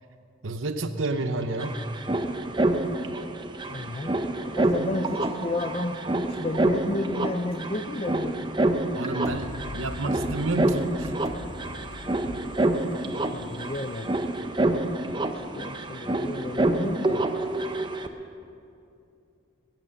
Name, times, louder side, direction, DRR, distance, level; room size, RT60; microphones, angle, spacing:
voice 1, 0.4-1.8 9.0-11.2, right 2 dB, 75° right, 9 dB, 0.9 m, -30 dB
sound 1, 1.0-1.1 1.3-18.1, right 2 dB, 25° right, 0.6 m, -28 dB
voice 2, 3.7-8.5 13.0-14.1 14.7-14.8 15.2-17.3, left 2 dB, 30° left, 7 dB, 0.5 m, -32 dB
sound 2, 9.2-14.9, left 2 dB, 75° left, 0.9 m, -42 dB
21.0 x 9.1 x 5.4 m, 2.6 s
head